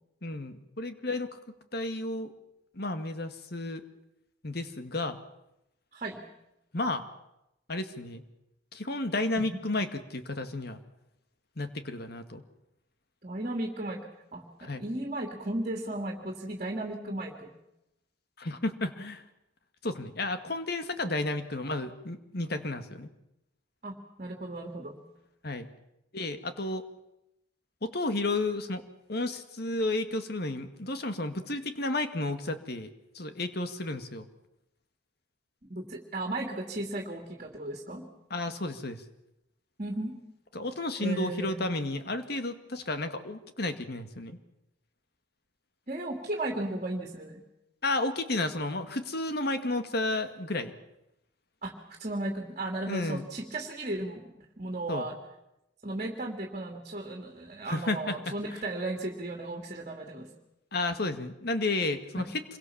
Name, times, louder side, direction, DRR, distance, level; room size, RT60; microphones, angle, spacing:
voice 1, 0.2-1.4 1.7-2.3 2.8-3.8 4.4-5.2 6.7-7.0 7.7-8.2 8.7-10.8 11.6-12.4 14.6-14.8 18.4-19.2 19.8-23.1 25.4-25.7 26.1-26.8 27.8-28.8 29.1-34.3 38.3-39.0 40.5-44.4 47.8-50.7 52.9-53.2 54.9-55.1 57.7-58.3 60.7-62.3, left 2 dB, 55° left, 9 dB, 2.0 m, -32 dB
voice 2, 5.9-6.2 9.4-9.6 13.2-14.1 14.3-17.5 21.0-21.2 23.8-25.0 35.7-38.0 39.8-40.2 41.0-41.7 45.9-47.4 51.6-55.2 55.8-60.3 62.2-62.3, right 2 dB, 40° right, 2 dB, 2.8 m, -35 dB
26.5 x 23.0 x 7.3 m, 0.87 s
head